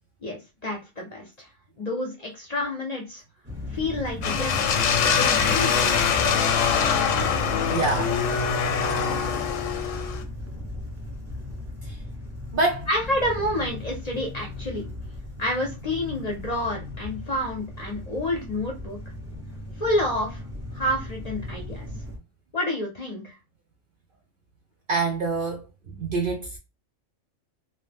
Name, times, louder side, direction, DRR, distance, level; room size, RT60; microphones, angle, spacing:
voice 1, 0.2-1.5 1.8-3.2 3.7-4.6 4.9-6.0 12.9-14.8 15.4-19.0 19.8-20.4 20.7-21.9 22.5-23.4, left 1 dB, 45° left, 0.6 m, -29 dB
sound 1, 3.4-22.2, left 2 dB, 15° right, 0.6 m, -37 dB
sound 2, 4.2-10.2, left 6 dB, 85° left, 0.9 m, -23 dB
voice 2, 7.7-8.2 11.8-12.0 12.5-12.9 24.9-26.6, right 3 dB, 60° right, 0.6 m, -26 dB
2.6 x 2.1 x 3.4 m
omnidirectional pair, 1.3 m